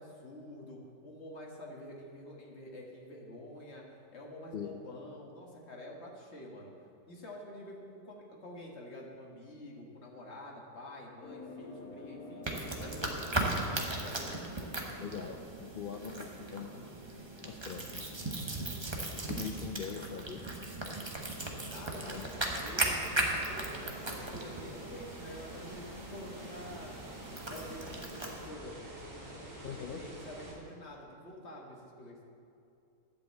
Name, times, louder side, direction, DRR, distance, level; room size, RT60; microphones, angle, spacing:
voice 1, 0.0-6.7 7.1-12.4 12.8-14.3 21.6-27.0 27.5-32.2, left 1 dB, 45° left, -1 dB, 1.7 m, -48 dB
sound 1, 11.2-16.3, left 2 dB, 65° left, 2.1 m, -49 dB
sound 2, 12.4-28.5, right 2 dB, 20° right, 0.9 m, -37 dB
voice 2, 15.0-16.8 17.4-18.1 19.1-20.4 22.0-22.3 29.6-30.0, left 7 dB, 85° left, 3 dB, 0.4 m, -42 dB
sound 3, 21.9-30.5, right 1 dB, 65° right, 2.8 m, -48 dB
11.5 x 5.4 x 8.0 m, 2.6 s
omnidirectional pair, 1.6 m